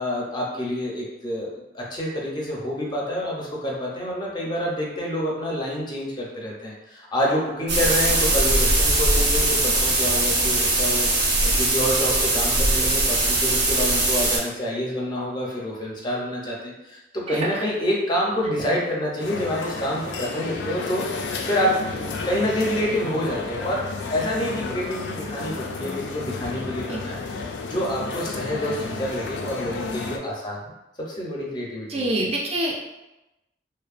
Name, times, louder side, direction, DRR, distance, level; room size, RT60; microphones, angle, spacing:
voice 1, 0.0-1.5 1.7-21.0 21.4-23.8 24.1-27.2 27.6-30.7 31.1-32.1, equal, 25° left, -3 dB, 0.5 m, -27 dB
sound 1, 7.7-14.4, right 2 dB, 85° right, 0.9 m, -21 dB
voice 2, 17.3-17.6 26.9-27.0 31.9-32.8, right 1 dB, 35° right, -2 dB, 0.4 m, -26 dB
sound 2, 19.2-30.2, left 4 dB, 85° left, 0.3 m, -32 dB
2.5 x 2.1 x 2.4 m, 0.95 s
head